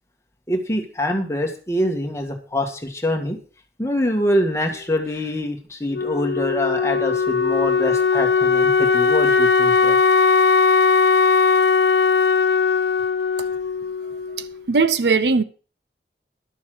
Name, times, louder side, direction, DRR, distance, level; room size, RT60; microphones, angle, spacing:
voice 1, 0.5-3.4 3.8-10.0, left 1 dB, 15° left, 1.6 m, -24 dB
Wind instrument woodwind instrument, 5.9-14.6, left 5 dB, 70° left, 0.6 m, -18 dB
voice 2, 14.4-15.4, right 4 dB, 75° right, 0.7 m, -19 dB
11.5 x 7.1 x 6.2 m
head